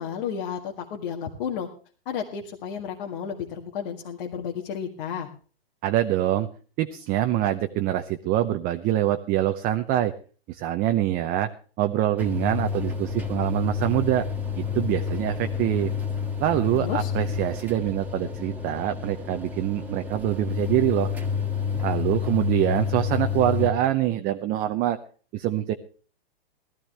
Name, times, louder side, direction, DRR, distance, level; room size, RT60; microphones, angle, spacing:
voice 1, 0.0-1.7 2.1-5.3 16.7-17.1, left 7 dB, 55° left, 0 dB, 2.0 m, -32 dB
voice 2, 5.8-6.5 6.8-10.1 10.5-11.5 11.8-14.3 14.6-15.9 16.4-21.1 21.8-25.0 25.3-25.7, right 13 dB, 30° right, 8 dB, 0.7 m, -25 dB
sound 1, 12.2-23.7, left 7 dB, 5° right, 2.1 m, -29 dB
18.0 x 14.0 x 3.4 m, 0.40 s
hypercardioid pair, 120°, 31 cm